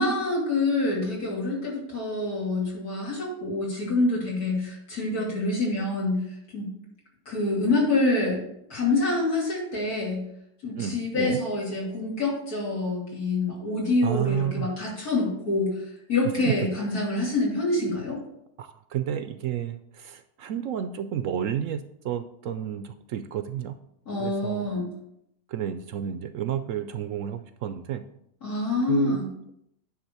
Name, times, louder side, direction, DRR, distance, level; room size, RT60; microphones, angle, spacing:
voice 1, 0.0-6.2 6.5-6.7 7.2-8.4 8.7-10.3 10.6-15.8 16.1-18.2 24.1-24.9 28.4-29.3, left 2 dB, 80° left, -4 dB, 3.5 m, -26 dB
voice 2, 10.8-11.4 14.0-14.7 16.3-16.6 18.6-23.8 24.2-24.7 25.5-28.0 28.9-29.2, right 9 dB, 70° right, 10 dB, 0.8 m, -31 dB
9.9 x 3.6 x 6.8 m, 0.77 s
omnidirectional pair, 1.6 m